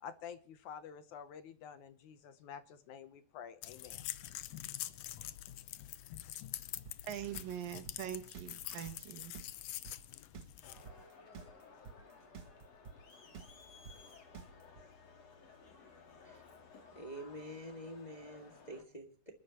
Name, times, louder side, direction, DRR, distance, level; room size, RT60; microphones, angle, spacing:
voice 1, 0.0-4.0, left 7 dB, 70° left, 11 dB, 2.0 m, -49 dB
sound 1, 3.6-10.9, left 14 dB, 90° left, 1.4 m, -45 dB
sound 2, 6.9-14.8, right 6 dB, 45° right, 2.4 m, -50 dB
voice 2, 7.0-9.3, right 10 dB, 80° right, 9 dB, 3.1 m, -43 dB
Crowd, 10.6-18.8, left 4 dB, 50° left, 3.7 m, -57 dB
voice 3, 16.9-19.3, equal, 20° left, 3 dB, 1.3 m, -47 dB
28.0 x 11.5 x 3.0 m, 0.41 s
omnidirectional pair, 4.0 m